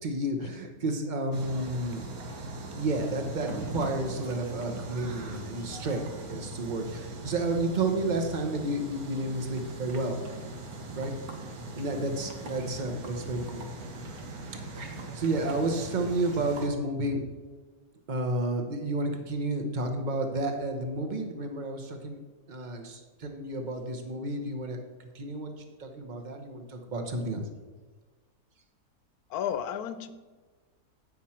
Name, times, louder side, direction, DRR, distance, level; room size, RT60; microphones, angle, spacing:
voice 1, 0.0-2.0 2.7-10.4 10.9-11.1 11.7-13.6 15.1-17.2 18.1-22.2 22.5-24.8 25.1-25.5 25.8-27.4, right 2 dB, 35° right, 4 dB, 0.9 m, -31 dB
sound 1, 1.3-16.7, right 2 dB, 75° right, 1.5 m, -40 dB
voice 2, 29.3-30.1, left 9 dB, 80° left, 11 dB, 1.1 m, -32 dB
9.0 x 6.0 x 4.3 m, 1.3 s
omnidirectional pair, 1.6 m